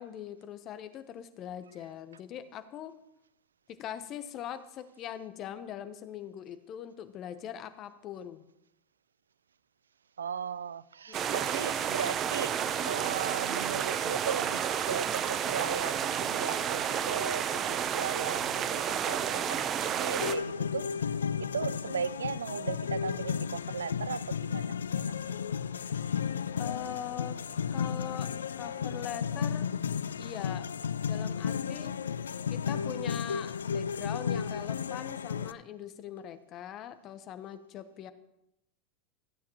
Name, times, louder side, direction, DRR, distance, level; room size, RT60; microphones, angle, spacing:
voice 1, 0.0-3.0 3.7-8.4 11.1-11.6 26.6-27.4 27.7-29.7 30.2-30.7 31.1-31.9 32.5-38.1, left 10 dB, 40° left, 0.9 m, -41 dB
voice 2, 10.2-12.5 12.8-25.4, right 7 dB, 80° right, 0.3 m, -37 dB
sound 1, 11.1-20.4, right 8 dB, 35° right, 0.7 m, -31 dB
sound 2, 20.2-35.5, left 7 dB, 80° left, 0.3 m, -33 dB
15.5 x 8.4 x 3.0 m
hypercardioid pair, 85°, 0 cm